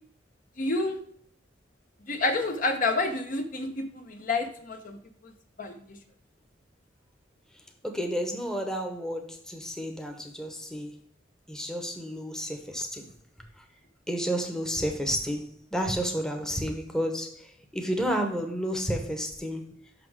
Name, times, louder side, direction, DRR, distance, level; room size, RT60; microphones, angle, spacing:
voice 1, 0.6-1.0 2.1-5.0 5.6-6.0, left 2 dB, 45° left, 5 dB, 0.8 m, -29 dB
voice 2, 7.8-11.0 11.5-13.0 13.6-13.7 14.1-19.8, equal, 5° left, 3 dB, 0.9 m, -31 dB
6.0 x 5.9 x 4.7 m, 0.63 s
head